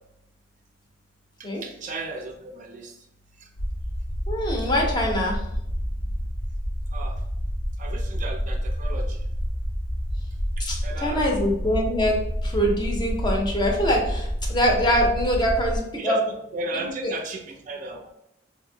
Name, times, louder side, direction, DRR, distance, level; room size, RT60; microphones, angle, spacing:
voice 1, 1.4-3.0 3.4-3.5 6.2-6.3 6.9-7.2 7.8-9.2 10.6-11.5 16.0-18.1, right 2 dB, 45° right, 3 dB, 0.3 m, -35 dB
sound 1, 3.6-15.8, equal, 65° left, 0.7 m, -29 dB
voice 2, 4.3-5.4 10.6-16.2 16.7-16.9, equal, 25° left, 0 dB, 0.5 m, -24 dB
2.7 x 2.6 x 2.6 m, 0.79 s
head